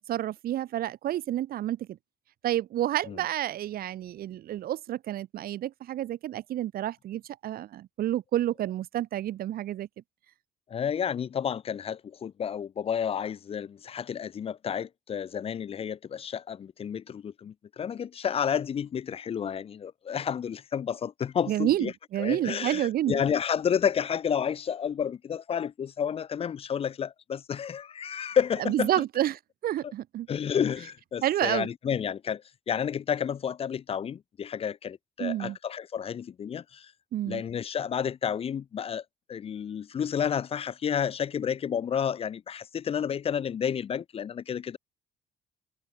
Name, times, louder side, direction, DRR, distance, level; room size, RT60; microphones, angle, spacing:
voice 1, 0.1-2.0 2.4-9.9 21.5-23.2 28.6-30.3 31.2-31.7 35.2-35.6 37.1-37.4, right 13 dB, 60° right, 1.2 m, -29 dB
voice 2, 10.7-21.9 22.2-28.9 30.3-36.9 37.3-39.0 39.3-44.8, left 8 dB, 35° left, 0.6 m, -31 dB
cardioid pair, 110°, 17 cm